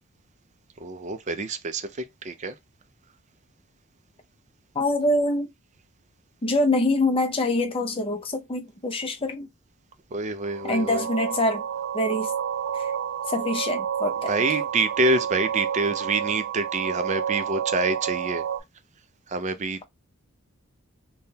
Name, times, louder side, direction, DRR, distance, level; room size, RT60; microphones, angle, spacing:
voice 1, 0.8-2.5 10.1-11.1 14.3-18.4 19.3-19.8, right 2 dB, 30° right, 0.4 m, -26 dB
voice 2, 4.7-5.5 6.4-9.5 10.6-11.6 11.9-12.3 12.7-12.9 13.3-14.3, left 1 dB, 25° left, 0.6 m, -25 dB
sound 1, 10.4-18.6, right 9 dB, 80° right, 0.6 m, -30 dB
3.5 x 2.2 x 2.7 m
head